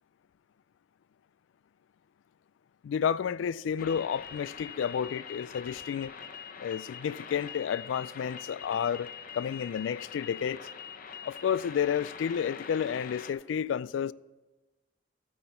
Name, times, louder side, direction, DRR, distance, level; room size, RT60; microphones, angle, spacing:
voice 1, 2.8-6.1 6.6-10.6 11.2-14.1, left 8 dB, 90° left, 0.3 m, -31 dB
sound 1, 3.8-13.3, left 7 dB, 50° left, 0.7 m, -44 dB
13.5 x 9.2 x 4.3 m
head